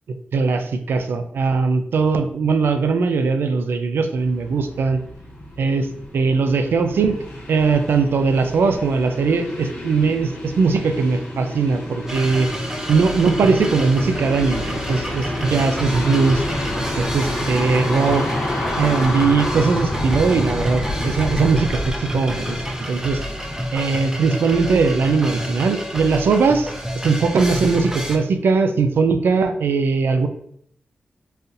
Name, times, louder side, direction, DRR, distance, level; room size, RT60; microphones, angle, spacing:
voice 1, 0.3-5.0 5.6-5.9 6.1-7.2 7.5-12.5 12.9-16.4 17.0-18.3 18.8-22.6 22.9-23.2 23.7-26.7 27.0-30.3, right 4 dB, 85° right, 7 dB, 0.4 m, -19 dB
sound 1, 4.2-23.8, left 1 dB, 90° left, 1.0 m, -29 dB
sound 2, 12.1-28.2, equal, 15° right, 0.6 m, -29 dB
4.0 x 2.6 x 2.6 m, 0.67 s
cardioid pair, 70°, 4 cm